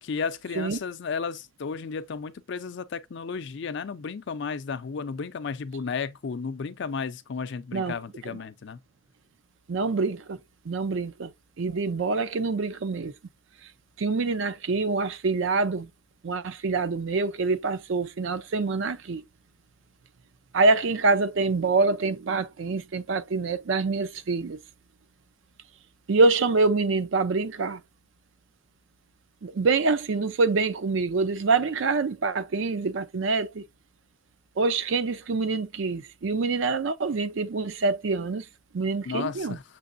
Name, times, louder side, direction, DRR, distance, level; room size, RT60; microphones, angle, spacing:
voice 1, 0.0-8.8 39.1-39.6, left 5 dB, 60° left, 0.4 m, -33 dB
voice 2, 9.7-10.4 10.7-11.3 11.6-13.1 14.0-15.9 16.2-19.2 20.5-24.6 26.1-27.8 29.4-33.7 34.6-38.5 38.7-39.6, right 3 dB, 65° right, 0.5 m, -25 dB
6.8 x 3.0 x 2.5 m
head